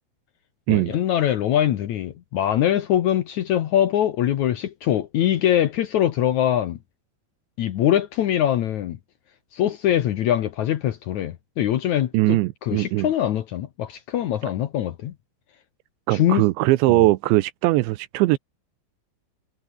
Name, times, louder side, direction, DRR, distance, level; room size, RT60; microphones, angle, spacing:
voice 1, 0.7-6.8 7.6-9.0 9.5-15.1 16.1-16.4 16.9-17.1, left 11 dB, 85° left, 1.6 m, -23 dB
voice 2, 12.1-13.1 16.1-18.4, right 19 dB, 85° right, 3.1 m, -20 dB
omnidirectional pair, 5.2 m